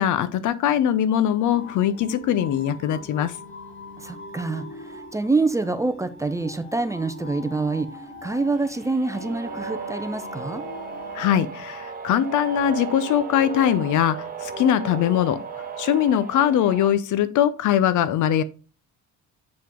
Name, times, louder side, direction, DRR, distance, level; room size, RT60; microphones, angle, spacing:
voice 1, 0.0-3.3 11.1-15.4 15.8-18.4, left 10 dB, 80° left, 0.7 m, -21 dB
sound 1, 1.5-11.3, left 2 dB, 40° left, 1.3 m, -41 dB
voice 2, 4.0-10.6, right 3 dB, 10° right, 0.4 m, -26 dB
sound 2, 8.7-16.9, right 4 dB, 30° right, 0.9 m, -35 dB
7.3 x 4.7 x 3.7 m
cardioid pair, 160°, 30 cm